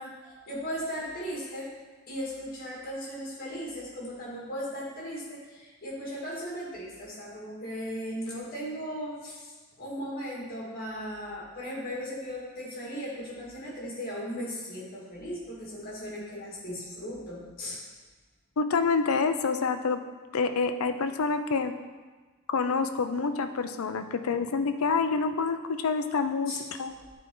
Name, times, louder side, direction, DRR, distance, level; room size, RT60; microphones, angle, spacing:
voice 1, 0.0-1.7 2.1-17.8 26.5-26.6, equal, 45° left, -5 dB, 2.1 m, -37 dB
voice 2, 18.6-20.0 20.3-21.8 22.5-26.9, left 4 dB, 85° left, 9 dB, 0.5 m, -27 dB
9.7 x 4.4 x 3.8 m, 1.3 s
head